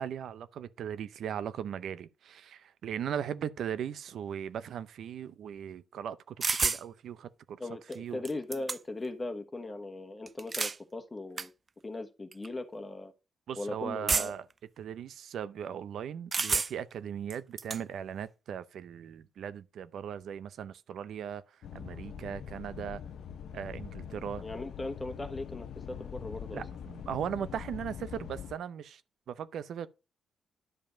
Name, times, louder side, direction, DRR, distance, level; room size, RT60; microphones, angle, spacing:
voice 1, 0.0-7.6 7.9-8.2 13.5-14.5 14.8-23.0 23.5-24.4 26.5-29.0 29.3-29.9, right 8 dB, 75° right, 0.6 m, -38 dB
sound 1, 6.4-6.8 7.9-8.0 8.2-9.1 10.3-10.8 11.4-11.5 12.3-12.5 14.1-14.5 16.3-16.9 17.3-17.8, right 4 dB, 35° right, 0.4 m, -30 dB
voice 2, 7.6-11.5 11.8-13.1 13.6-14.3 24.4-26.6, left 2 dB, 20° left, 1.2 m, -39 dB
sound 2, 21.6-28.5, left 8 dB, 70° left, 0.7 m, -43 dB
11.0 x 5.1 x 5.1 m
cardioid pair, 90°, 0 cm